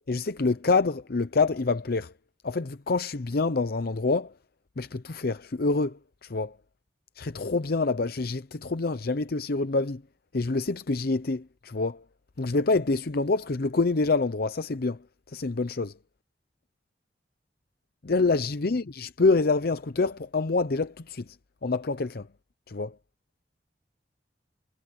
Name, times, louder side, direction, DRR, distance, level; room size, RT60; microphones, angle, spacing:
voice 1, 0.1-2.1 2.4-4.3 4.8-6.6 7.2-10.0 10.3-12.0 12.4-16.0 18.0-21.4 21.6-22.3 22.7-23.0, left 3 dB, 60° left, 0.7 m, -26 dB
head